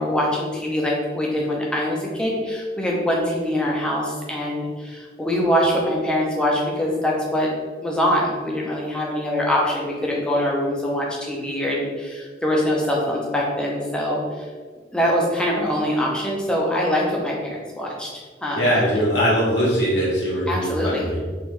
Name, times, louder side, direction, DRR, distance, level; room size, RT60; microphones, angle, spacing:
voice 1, 0.0-7.5 7.8-14.5 14.9-18.1 18.4-18.8 20.5-21.1, equal, 5° left, -3 dB, 0.6 m, -23 dB
voice 2, 18.5-21.2, equal, 75° left, -6 dB, 1.5 m, -21 dB
3.5 x 3.1 x 3.2 m, 1.5 s
head